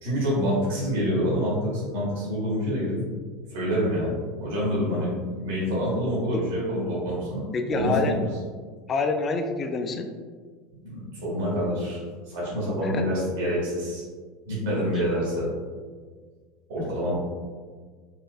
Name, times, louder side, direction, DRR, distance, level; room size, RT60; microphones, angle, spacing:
voice 1, 0.0-2.9 3.5-5.1 5.4-8.2 10.8-14.0 14.5-15.5 16.7-17.2, equal, 80° right, -7 dB, 1.3 m, -27 dB
voice 2, 7.5-8.1 8.9-10.1 12.8-13.0 16.8-16.9, left 4 dB, 30° left, 5 dB, 0.3 m, -27 dB
4.2 x 2.4 x 2.3 m, 1.6 s
supercardioid pair, 120°, 0 cm